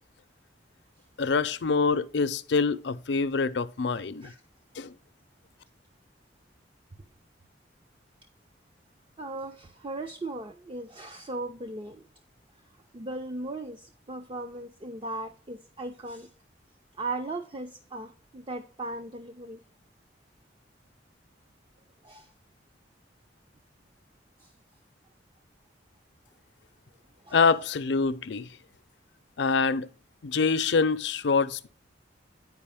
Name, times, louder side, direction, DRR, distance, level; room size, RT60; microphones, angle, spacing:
voice 1, 1.2-4.3 4.8-4.9 27.3-28.5 29.4-29.9 30.2-31.7, left 4 dB, 70° left, 0.5 m, -25 dB
voice 2, 9.2-12.0 12.9-16.3 17.0-19.6 22.0-22.3 24.4-24.5 27.3-27.4, right 2 dB, 30° right, 0.5 m, -37 dB
9.5 x 4.8 x 3.5 m
head